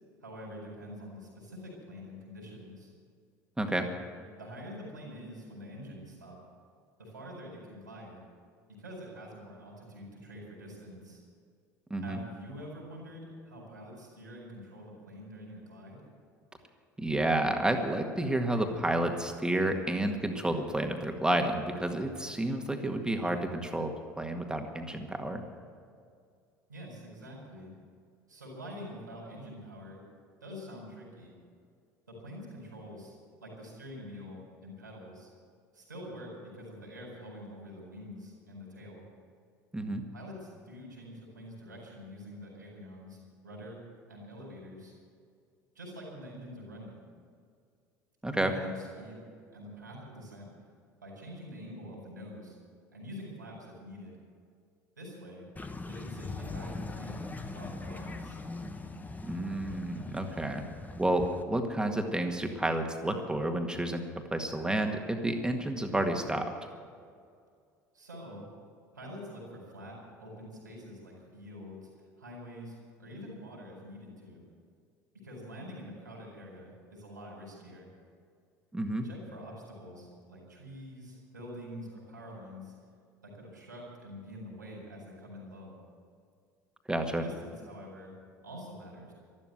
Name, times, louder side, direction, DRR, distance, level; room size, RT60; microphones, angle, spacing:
voice 1, 0.2-2.9 4.4-6.4 7.0-8.2 8.8-11.2 12.0-16.0 26.7-27.7 28.3-30.0 30.4-31.3 32.1-33.1 33.4-35.3 35.7-39.0 40.1-43.8 44.1-44.9 45.7-47.0 48.4-49.2 49.5-50.5 51.0-52.6 52.9-54.2 55.0-55.4 55.9-57.3 57.5-58.4 67.9-68.5 68.9-71.9 72.2-74.4 75.1-77.9 78.9-82.7 83.2-85.8 87.2-88.1 88.4-89.1, equal, 90° right, -2 dB, 4.5 m, -46 dB
voice 2, 3.6-3.9 11.9-12.2 17.0-23.9 24.2-25.4 39.7-40.0 48.2-48.5 59.2-60.6 61.0-66.5 78.7-79.1 86.9-87.2, right 1 dB, 10° right, 4 dB, 1.9 m, -30 dB
sound 1, 55.6-61.4, left 3 dB, 15° left, 1.3 m, -41 dB
13.0 x 12.5 x 7.9 m, 2.2 s
hypercardioid pair, 65°, 10 cm